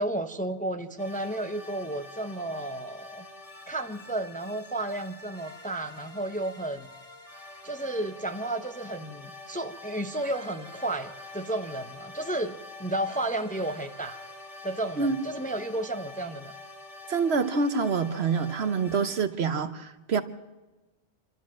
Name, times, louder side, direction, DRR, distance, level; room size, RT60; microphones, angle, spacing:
voice 1, 0.0-3.2 3.7-6.9 7.6-14.2 14.6-16.5, right 1 dB, 10° left, 7 dB, 0.7 m, -32 dB
sound 1, 1.0-19.2, left 2 dB, 30° left, 1.6 m, -46 dB
voice 2, 17.1-20.2, right 5 dB, 60° right, 11 dB, 1.2 m, -26 dB
27.0 x 13.0 x 7.5 m, 1.1 s
omnidirectional pair, 1.2 m